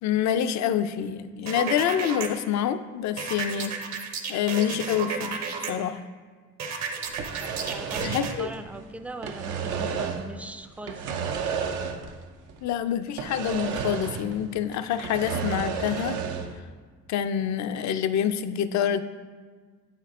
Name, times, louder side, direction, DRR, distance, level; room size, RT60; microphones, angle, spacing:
voice 1, 0.0-4.0 4.3-5.4 5.7-6.0 8.0-8.5 12.6-16.2 17.1-19.0, left 9 dB, 65° left, 11 dB, 0.4 m, -27 dB
sound 1, 1.5-2.3 3.2-5.7 6.6-8.3, right 5 dB, 60° right, 0.8 m, -32 dB
sound 2, 7.1-8.8 9.1-10.3 10.8-12.2 12.5-12.6 13.2-14.4 14.7-16.6, right 6 dB, 90° right, 0.6 m, -32 dB
voice 2, 7.4-11.2, right 2 dB, 5° right, 8 dB, 0.3 m, -40 dB
8.4 x 4.4 x 3.6 m, 1.5 s
cardioid pair, 90°, 30 cm